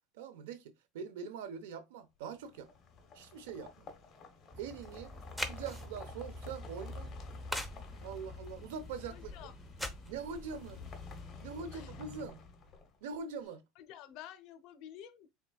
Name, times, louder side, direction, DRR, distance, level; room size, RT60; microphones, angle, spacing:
voice 1, 0.1-2.7 3.1-3.9 4.6-5.1 5.4-7.1 8.0-9.3 10.1-10.8 11.4-12.5 13.0-13.6, right 6 dB, 90° right, 0.8 m, -43 dB
sound 1, 2.3-13.2, left 4 dB, 30° left, 1.0 m, -52 dB
sound 2, 4.5-11.2, left 1 dB, 5° right, 0.6 m, -44 dB
voice 2, 9.1-9.5 11.7-12.0 13.8-15.3, left 11 dB, 60° left, 0.7 m, -50 dB
4.5 x 3.6 x 2.3 m
supercardioid pair, 130°, 0 cm